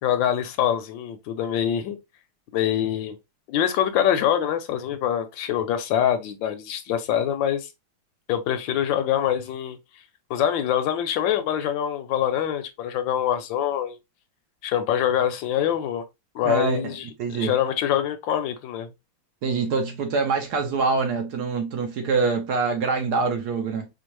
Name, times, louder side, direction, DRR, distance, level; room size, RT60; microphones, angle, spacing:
voice 1, 0.0-2.0 2.5-3.2 3.5-7.7 8.3-9.8 10.3-14.0 14.6-16.0 16.3-18.9, left 10 dB, 75° left, 1.3 m, -24 dB
voice 2, 16.4-17.5 19.4-23.9, right 4 dB, 65° right, 1.1 m, -25 dB
4.4 x 2.4 x 3.0 m
omnidirectional pair, 2.2 m